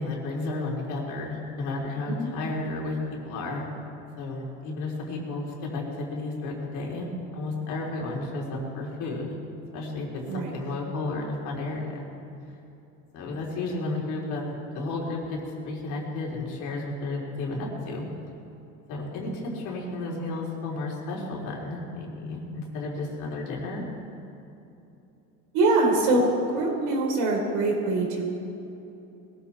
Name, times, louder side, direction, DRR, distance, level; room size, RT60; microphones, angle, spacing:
voice 1, 0.0-3.0 3.2-3.7 4.2-7.1 7.3-9.3 9.7-12.1 13.1-15.4 15.6-18.0 18.9-23.8, left 2 dB, 65° left, -2 dB, 3.9 m, -32 dB
voice 2, 25.5-28.3, right 2 dB, 75° right, 0 dB, 4.4 m, -23 dB
20.5 x 14.5 x 4.3 m, 2.9 s
supercardioid pair, 115°, 33 cm